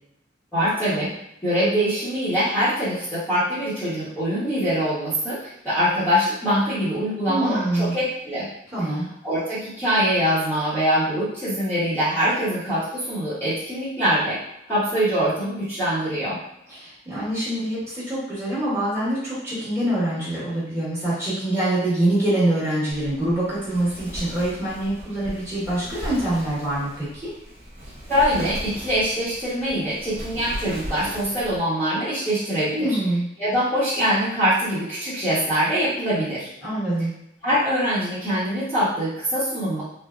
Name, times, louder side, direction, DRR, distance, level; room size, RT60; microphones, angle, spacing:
voice 1, 0.5-1.1 1.4-8.5 9.2-14.4 14.7-16.4 28.1-33.0 33.4-36.5 37.4-39.8, equal, 10° left, -14 dB, 0.9 m, -23 dB
voice 2, 7.3-8.0 8.7-9.1 16.7-27.3 32.7-33.3 36.6-37.1, right 1 dB, 15° right, -11 dB, 1.3 m, -25 dB
Wind, 22.9-31.6, equal, 35° right, 0.7 m, -37 dB
3.3 x 2.0 x 2.4 m, 0.81 s
head